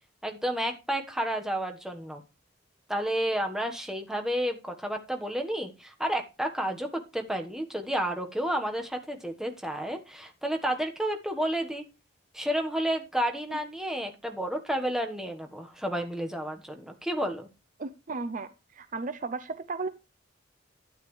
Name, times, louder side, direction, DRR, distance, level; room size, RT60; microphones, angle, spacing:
voice 1, 0.2-2.2 2.9-11.8 12.3-17.5, equal, 5° right, 4 dB, 1.3 m, -31 dB
voice 2, 17.8-18.5 18.8-19.9, right 3 dB, 40° right, 12 dB, 0.5 m, -34 dB
12.0 x 9.4 x 3.2 m, 0.29 s
head